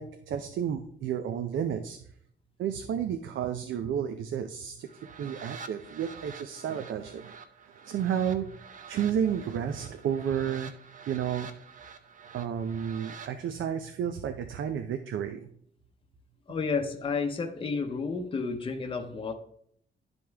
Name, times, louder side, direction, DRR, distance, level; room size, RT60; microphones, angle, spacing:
voice 1, 0.0-2.0 2.6-4.9 5.2-7.4 7.8-8.6 8.9-10.7 11.1-11.5 12.3-15.5, right 8 dB, 80° right, 7 dB, 0.6 m, -31 dB
sound 1, 4.8-13.3, right 6 dB, 45° right, 0.7 m, -47 dB
voice 2, 16.5-19.3, left 4 dB, 25° left, 5 dB, 0.7 m, -31 dB
11.0 x 5.3 x 3.4 m, 0.66 s
wide cardioid pair, 175°, 20 cm